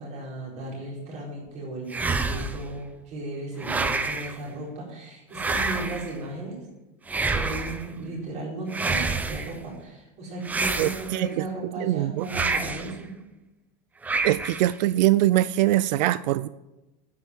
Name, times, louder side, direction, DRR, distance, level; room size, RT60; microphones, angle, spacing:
voice 1, 0.0-6.6 7.1-13.1, right 2 dB, 30° right, -3 dB, 4.4 m, -36 dB
sound 1, 1.9-2.7 3.6-4.4 5.3-6.1 7.1-7.9 8.7-9.5 10.4-11.3 12.3-12.9 14.0-14.7, right 3 dB, 5° right, 0.5 m, -28 dB
voice 2, 10.8-12.3 14.2-16.5, right 15 dB, 90° right, 17 dB, 0.5 m, -23 dB
9.9 x 9.0 x 7.6 m, 1.0 s
supercardioid pair, 175°, 21 cm